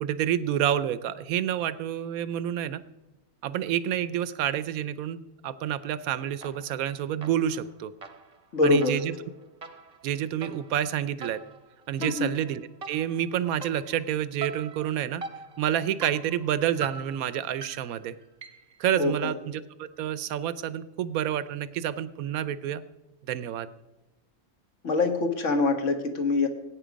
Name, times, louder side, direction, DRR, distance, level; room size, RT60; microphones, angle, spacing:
voice 1, 0.0-2.8 3.4-7.9 8.6-9.2 10.0-11.4 11.9-12.6 12.9-15.2 15.6-18.2 18.8-22.8 23.2-23.7, right 10 dB, 90° right, 16 dB, 1.1 m, -29 dB
sound 1, 6.4-6.9 7.2-18.8, right 5 dB, 35° right, 0.8 m, -43 dB
voice 2, 8.5-9.0 12.0-12.3 19.0-19.3 24.8-26.5, left 3 dB, 60° left, 6 dB, 1.8 m, -24 dB
18.5 x 9.2 x 5.1 m, 1.0 s
omnidirectional pair, 1.4 m